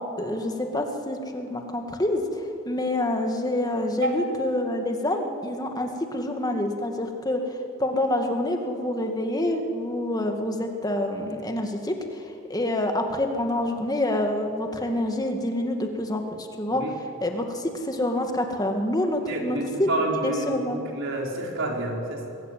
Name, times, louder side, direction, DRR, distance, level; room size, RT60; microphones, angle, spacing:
voice 1, 0.2-2.2 2.7-7.4 7.8-12.2 12.5-16.8 17.2-19.9 20.2-20.8, left 1 dB, 20° left, 4 dB, 2.1 m, -27 dB
voice 2, 19.3-22.3, right 2 dB, 60° right, 0 dB, 4.6 m, -29 dB
23.5 x 19.5 x 9.5 m, 2.7 s
head